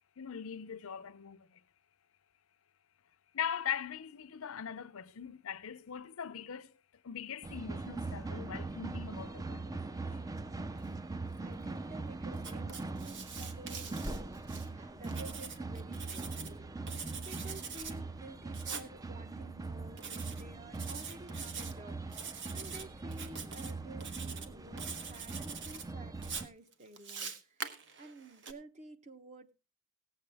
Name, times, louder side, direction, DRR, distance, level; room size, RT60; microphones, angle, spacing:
voice 1, 0.2-1.6 3.3-6.7 7.0-10.2, left 8 dB, 70° left, 0.6 m, -41 dB
sound 1, 7.4-26.5, right 3 dB, 15° right, 0.5 m, -41 dB
voice 2, 11.4-14.3 14.7-29.5, right 2 dB, 35° right, 1.0 m, -52 dB
Writing, 12.4-14.7 15.0-16.5 16.9-17.9 18.5-18.9 20.0-20.4 20.7-21.7 22.1-22.8 23.1-23.7 24.0-24.5 24.8-25.8 26.2-28.5, right 6 dB, 60° right, 1.3 m, -44 dB
18.5 x 7.9 x 3.4 m
head